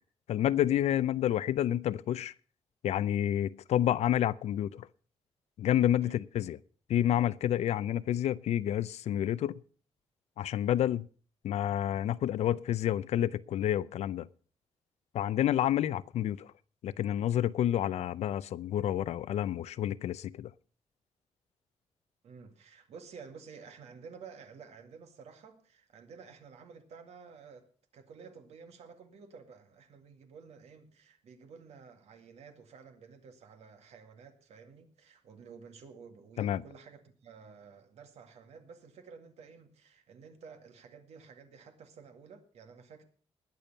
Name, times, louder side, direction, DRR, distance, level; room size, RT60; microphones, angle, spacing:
voice 1, 0.3-2.3 2.8-4.9 5.6-6.6 6.9-9.6 10.4-11.1 11.4-14.3 15.1-16.5 16.8-20.5 36.4-36.6, left 11 dB, 85° left, 0.5 m, -29 dB
voice 2, 22.2-27.7 27.9-43.0, right 5 dB, 85° right, 2.1 m, -52 dB
20.0 x 7.0 x 5.6 m
wide cardioid pair, 135°, 11 cm